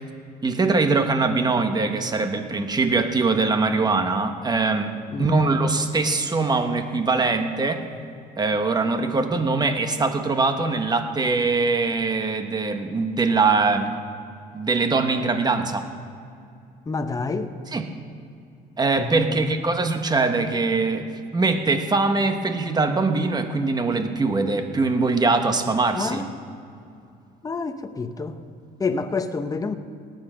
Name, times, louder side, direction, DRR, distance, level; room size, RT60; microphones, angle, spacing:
voice 1, 0.4-7.8 8.4-13.9 14.5-15.9 17.7-17.9 18.8-21.1 21.3-26.2, right 3 dB, 25° right, 7 dB, 1.3 m, -22 dB
voice 2, 16.9-17.5 19.0-19.5 25.9-26.3 27.4-28.4 28.8-29.7, left 4 dB, 20° left, 9 dB, 0.9 m, -28 dB
18.0 x 9.2 x 6.3 m, 2.4 s
cardioid pair, 110°, 17 cm